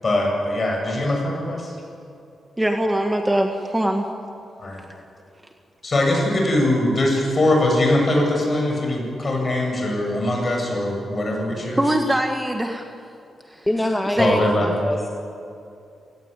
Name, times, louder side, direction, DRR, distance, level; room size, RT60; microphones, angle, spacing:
voice 1, 0.0-1.7 4.6-4.9 5.8-11.8 14.2-14.7, left 1 dB, 35° left, 1 dB, 8.0 m, -21 dB
voice 2, 2.6-4.1 11.8-12.9 13.5-13.7 14.1-14.4, right 1 dB, 10° right, 4 dB, 1.7 m, -22 dB
voice 3, 13.7-14.3 14.6-15.1, left 1 dB, 10° left, 3 dB, 1.8 m, -24 dB
27.0 x 18.5 x 9.2 m, 2.6 s
cardioid pair, 90°, 0 cm